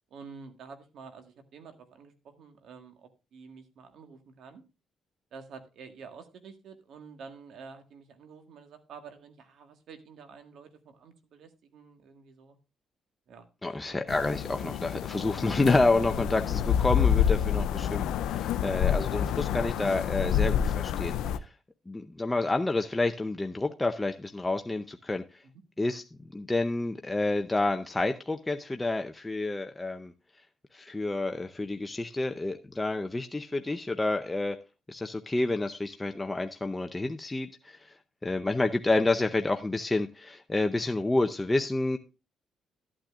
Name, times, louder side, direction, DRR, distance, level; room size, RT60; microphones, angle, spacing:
voice 1, 0.1-4.6 5.3-12.6 13.3-13.5 13.8-14.0 18.8-19.2 25.4-25.6, right 5 dB, 70° right, 7 dB, 1.6 m, -49 dB
voice 2, 13.6-21.2 21.9-25.2 25.8-26.0 26.3-30.1 30.7-34.6 34.9-37.9 38.2-42.0, left 2 dB, 15° left, 6 dB, 0.6 m, -29 dB
sound 1, 14.1-21.4, left 9 dB, 85° left, 0.5 m, -28 dB
13.0 x 8.8 x 2.4 m, 0.30 s
cardioid pair, 90°, 0 cm